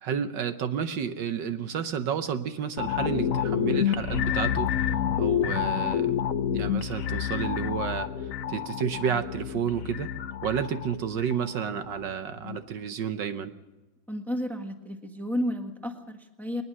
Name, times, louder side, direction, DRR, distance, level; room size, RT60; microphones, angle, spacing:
voice 1, 0.0-6.1 6.5-10.1 10.4-13.5, right 8 dB, 65° right, 10 dB, 1.5 m, -31 dB
sound 1, 2.8-12.1 12.4-12.6, left 9 dB, 55° left, 1.0 m, -29 dB
voice 2, 14.1-16.6, equal, ahead, 5 dB, 1.3 m, -32 dB
21.0 x 20.0 x 6.3 m, 1.1 s
omnidirectional pair, 2.2 m